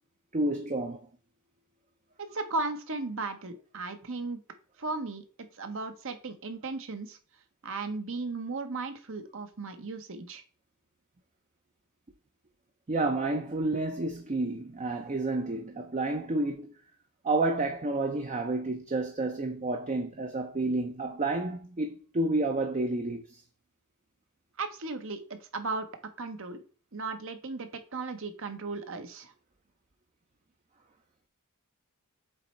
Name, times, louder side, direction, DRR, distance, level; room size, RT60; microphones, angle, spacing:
voice 1, 0.3-1.0 12.9-16.8 17.2-23.4, right 2 dB, 30° right, 0.6 m, -30 dB
voice 2, 2.2-4.4 4.8-7.2 7.6-10.4 24.6-25.9 26.2-26.6 26.9-29.3, right 3 dB, 60° right, 1.0 m, -36 dB
7.6 x 3.1 x 4.4 m
head